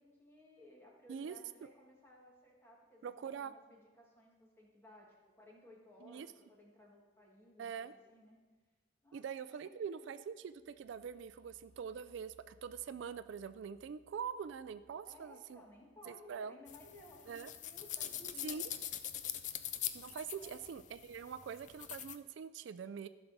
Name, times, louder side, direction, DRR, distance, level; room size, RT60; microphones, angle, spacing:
voice 1, 0.0-8.4 9.0-10.1 15.0-18.6 20.3-20.5, left 1 dB, 10° left, -2 dB, 1.6 m, -59 dB
voice 2, 3.0-3.5 6.0-6.3 7.6-7.9 9.1-15.6 16.1-16.6 17.3-17.5 18.4-18.6 19.9-23.1, right 7 dB, 70° right, 13 dB, 0.3 m, -44 dB
sound 1, 10.5-18.2, right 1 dB, 30° right, 3.3 m, -71 dB
sound 2, 16.7-22.2, left 11 dB, 40° left, 0.3 m, -43 dB
14.5 x 6.0 x 4.0 m, 1.3 s
head